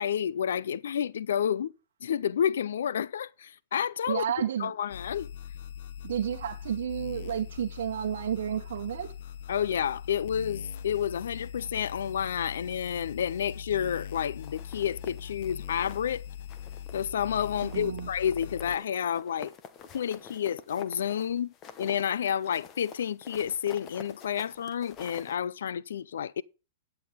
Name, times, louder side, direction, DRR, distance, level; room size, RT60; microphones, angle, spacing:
voice 1, 0.0-1.7 2.0-4.2 4.6-5.3 9.5-16.3 16.9-19.5 19.9-26.4, left 9 dB, 85° left, 0.4 m, -30 dB
voice 2, 4.1-4.7 6.0-9.1 17.6-18.1, right 9 dB, 75° right, 1.0 m, -31 dB
sound 1, 4.9-18.8, left 8 dB, 60° left, 0.9 m, -41 dB
sound 2, 14.4-16.2 16.5-17.1 17.4-25.4, left 7 dB, 25° left, 1.0 m, -48 dB
11.0 x 7.6 x 5.0 m
hypercardioid pair, 150°, 0 cm